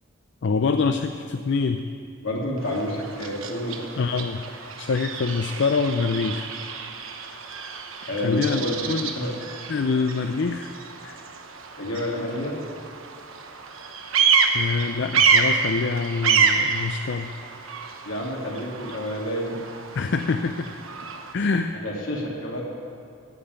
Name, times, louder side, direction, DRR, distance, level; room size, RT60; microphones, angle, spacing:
voice 1, 0.4-1.9 4.0-4.4 4.8-6.5 8.2-9.1 9.7-10.7 11.0-11.3 14.5-17.3 19.9-20.7 21.3-21.7, left 4 dB, 60° left, 7 dB, 0.4 m, -25 dB
voice 2, 2.2-3.9 8.0-8.9 9.2-9.3 11.8-12.6 18.0-19.6 21.8-22.6, left 1 dB, 80° left, -3 dB, 2.7 m, -29 dB
Bird vocalization bird call bird song, 2.6-21.3, right 5 dB, 90° right, 1.1 m, -28 dB
15.5 x 5.7 x 9.4 m, 2.4 s
head